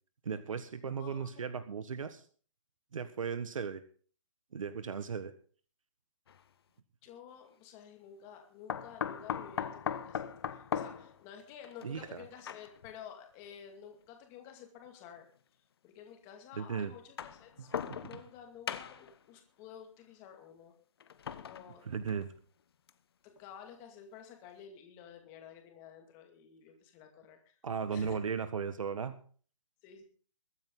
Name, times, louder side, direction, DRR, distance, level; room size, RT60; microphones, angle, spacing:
voice 1, 0.2-2.2 2.9-3.8 4.5-5.3 11.8-12.2 16.5-16.9 17.8-18.0 21.9-22.3 27.6-29.2, right 6 dB, 75° right, 11 dB, 1.5 m, -36 dB
voice 2, 0.8-1.5 7.0-10.2 10.5-15.3 15.8-20.7 21.3-21.8 23.2-27.5 27.9-28.2 29.8-30.0, left 8 dB, 15° left, 4 dB, 2.3 m, -51 dB
sound 1, 6.3-6.4 8.7-13.0 13.9-14.0 15.2-15.3 16.9-18.4 18.7-19.2 21.0-22.4 22.9-23.0 23.4-23.5, left 8 dB, 45° left, 1.1 m, -39 dB
22.5 x 9.5 x 3.9 m, 0.43 s
hypercardioid pair, 170°, 17 cm